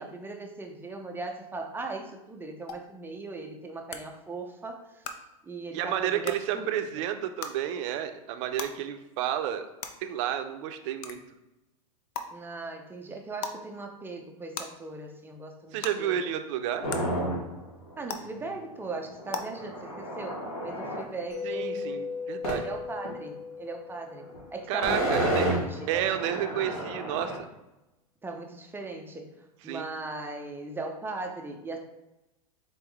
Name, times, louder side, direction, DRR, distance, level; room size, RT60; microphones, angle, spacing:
voice 1, 0.0-5.2 5.4-7.0 12.3-16.3 18.0-20.4 20.6-22.0 22.5-26.4 28.2-31.8, right 3 dB, 10° right, 3 dB, 0.5 m, -39 dB
sound 1, 2.7-2.8 3.9-4.0 5.0-5.1 6.2-6.3 7.4-7.5 8.6-8.7 9.8-9.9 11.0-11.1 12.1-12.2 13.4-13.6 14.5-14.6 15.8-15.9 16.9-17.0 18.1-18.2 19.3-19.4, left 6 dB, 50° left, 0.6 m, -34 dB
voice 2, 5.7-9.7 10.0-11.2 15.7-16.8 21.5-22.7 24.7-25.5 25.9-27.5 29.7-29.9, right 10 dB, 55° right, 8 dB, 0.6 m, -31 dB
sound 2, 16.8-17.6 18.0-18.1 18.2-21.0 22.4-22.7 23.0-23.1 24.2-24.4 24.7-27.4, equal, 85° left, 1.4 m, -31 dB
Mallet percussion, 21.3-25.1, left 5 dB, 15° left, 1.0 m, -38 dB
4.1 x 3.4 x 3.4 m, 0.98 s
hypercardioid pair, 110°, 19 cm